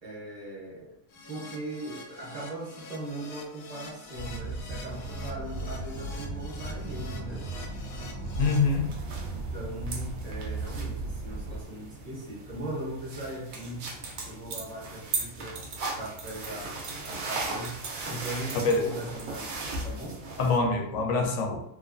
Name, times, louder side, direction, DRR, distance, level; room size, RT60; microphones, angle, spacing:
voice 1, 0.0-0.9 1.3-7.5 9.3-13.9 14.3-15.6 16.0-16.7 17.0-19.5 19.8-20.2, right 1 dB, 35° right, -4 dB, 0.8 m, -39 dB
Keyboard (musical), 1.1-8.6, left 3 dB, 65° left, 0.7 m, -46 dB
sound 1, 4.1-11.6, right 2 dB, 85° right, 1.0 m, -36 dB
voice 2, 8.4-9.0 18.6-19.0 20.4-21.6, left 3 dB, 85° left, 3 dB, 1.0 m, -25 dB
sound 2, 8.4-20.6, right 3 dB, 65° right, 0.5 m, -38 dB
3.0 x 2.2 x 2.4 m, 0.79 s
omnidirectional pair, 1.4 m